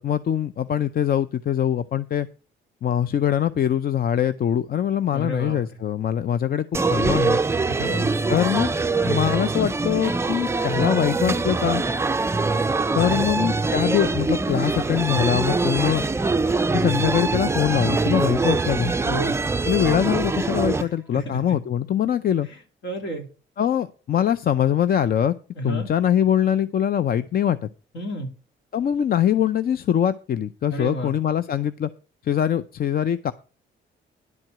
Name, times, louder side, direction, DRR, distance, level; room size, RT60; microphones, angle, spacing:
voice 1, 0.0-2.3 2.8-7.4 8.3-8.7 9.0-11.8 13.0-16.1 16.7-18.9 19.6-22.5 23.6-25.3 25.6-27.6 28.7-31.9 32.2-33.3, left 10 dB, 50° left, 14 dB, 0.5 m, -23 dB
voice 2, 5.1-5.6 7.7-8.1 13.1-13.4 19.0-19.4 20.8-20.9 21.1-21.4 22.8-23.3 25.6-25.9 27.9-28.3 30.7-31.1, right 1 dB, 70° left, 3 dB, 2.8 m, -30 dB
sound 1, 6.7-20.8, right 3 dB, 15° right, 0.4 m, -23 dB
11.0 x 4.5 x 7.8 m, 0.35 s
cardioid pair, 90°, 20 cm